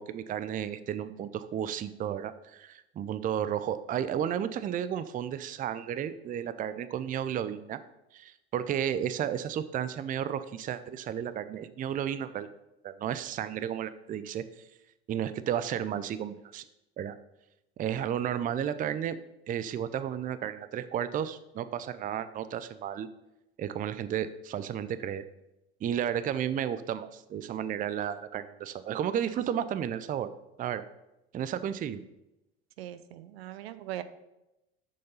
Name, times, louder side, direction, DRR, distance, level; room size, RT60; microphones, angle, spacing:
voice 1, 0.0-7.8 8.1-12.5 12.8-14.4 15.1-16.6 17.0-17.1 17.8-19.2 19.5-23.1 23.6-25.2 25.8-30.3 30.6-30.8 31.3-32.0, right 9 dB, 25° right, 13 dB, 0.5 m, -33 dB
voice 2, 32.8-34.0, right 13 dB, 70° right, 13 dB, 0.7 m, -40 dB
6.8 x 6.5 x 5.4 m, 0.93 s
hypercardioid pair, 75°, 32 cm